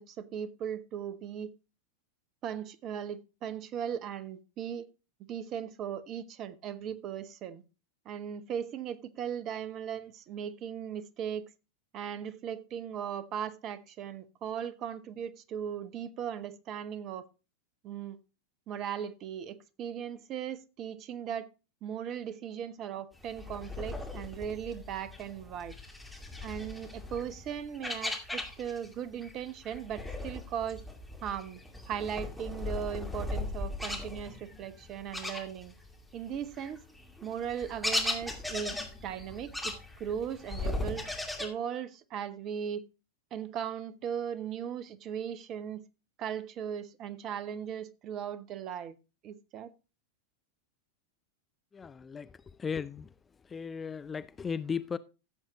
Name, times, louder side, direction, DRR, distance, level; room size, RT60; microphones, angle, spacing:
voice 1, 0.0-1.5 2.4-4.9 5.3-7.6 8.0-11.5 11.9-17.3 17.8-18.2 18.7-21.5 21.8-25.8 26.4-30.8 31.2-31.6 31.9-35.7 36.1-36.8 37.2-38.8 39.0-41.0 41.4-42.8 43.3-45.8 46.2-49.0 49.2-49.7, right 8 dB, 35° right, 0.8 m, -38 dB
sound 1, 23.2-28.9 29.2-36.0 36.3-41.5, left 2 dB, ahead, 2.3 m, -38 dB
voice 2, 51.7-52.3 52.6-53.1 53.5-55.0, left 6 dB, 20° left, 0.4 m, -36 dB
15.0 x 7.3 x 3.0 m
figure-of-eight pair, 90°, 0 cm